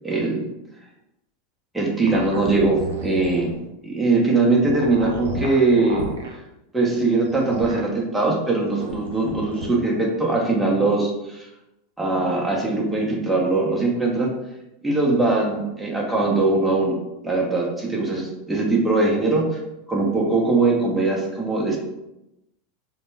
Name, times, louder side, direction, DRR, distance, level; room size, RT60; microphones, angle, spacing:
voice 1, 0.0-0.5 1.7-3.5 3.8-6.0 6.7-11.5 12.0-14.3 14.8-17.0 17.2-19.6 19.9-21.8, right 3 dB, 10° right, -2 dB, 0.7 m, -21 dB
sound 1, 2.1-3.6 4.6-6.3 7.2-7.9 8.7-9.7, right 2 dB, 80° right, 0.4 m, -33 dB
2.1 x 2.1 x 3.1 m, 0.90 s
hypercardioid pair, 100°, 0 cm